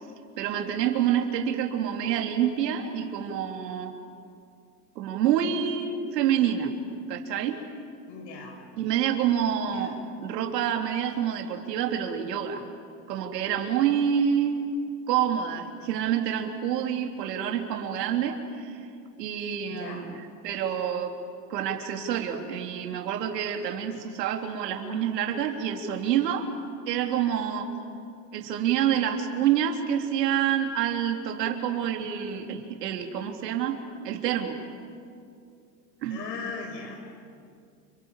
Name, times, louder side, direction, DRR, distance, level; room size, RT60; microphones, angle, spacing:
voice 1, 0.4-3.9 5.0-6.7 7.1-7.6 8.8-12.6 13.1-14.7 15.1-18.9 19.2-20.2 20.4-21.1 21.5-26.5 26.9-27.7 28.3-33.8 34.0-34.6 36.0-36.2, right 9 dB, 80° right, 4 dB, 3.5 m, -27 dB
voice 2, 8.1-8.6 9.7-9.9 19.7-20.1 36.1-37.1, left 4 dB, 85° left, 4 dB, 6.5 m, -38 dB
30.0 x 26.5 x 7.5 m, 2.4 s
supercardioid pair, 125°, 48 cm